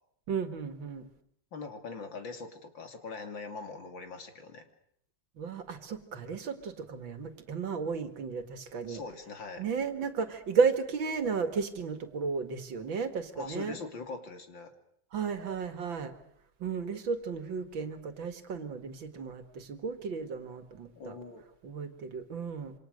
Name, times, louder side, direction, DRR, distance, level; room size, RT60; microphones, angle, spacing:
voice 1, 0.3-1.1 5.4-9.0 9.6-13.8 15.1-16.1 16.6-21.2 21.6-22.7, right 5 dB, 85° right, 9 dB, 2.7 m, -33 dB
voice 2, 1.5-4.6 8.9-9.6 13.3-14.7 21.0-21.4, left 4 dB, 80° left, 6 dB, 3.4 m, -42 dB
27.5 x 25.5 x 6.6 m, 0.69 s
omnidirectional pair, 2.0 m